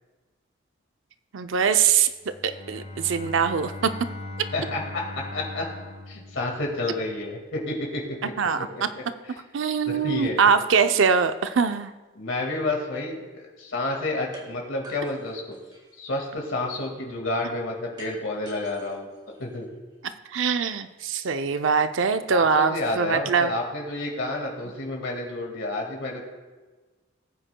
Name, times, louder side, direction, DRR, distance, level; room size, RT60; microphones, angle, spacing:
voice 1, 1.3-3.7 8.4-8.7 9.5-11.9 20.3-23.5, right 6 dB, 75° right, 10 dB, 0.5 m, -23 dB
Bowed string instrument, 2.2-7.2, left 2 dB, 35° left, 1.1 m, -39 dB
voice 2, 4.5-5.0 5.3-5.7 6.1-9.3 9.9-10.4 12.2-15.6 16.0-19.1 19.4-19.7 22.3-26.2, left 2 dB, 85° left, 0 dB, 1.9 m, -30 dB
sound 1, 14.3-14.5 14.8-16.0 18.0-20.0, right 1 dB, 20° right, 1.6 m, -48 dB
18.5 x 9.0 x 2.2 m, 1.3 s
head